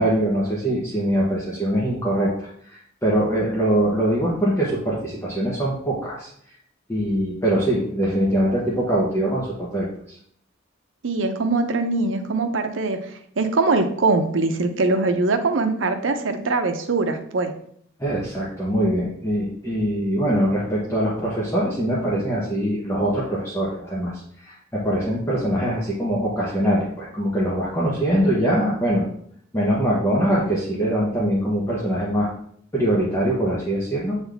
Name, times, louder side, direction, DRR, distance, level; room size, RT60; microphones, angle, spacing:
voice 1, 0.0-6.3 6.9-9.9 18.0-29.0 29.5-32.3 32.7-34.2, right 1 dB, 15° left, -5 dB, 1.1 m, -23 dB
voice 2, 11.0-17.5, right 3 dB, 80° right, 7 dB, 0.7 m, -22 dB
7.9 x 4.0 x 3.5 m, 0.63 s
head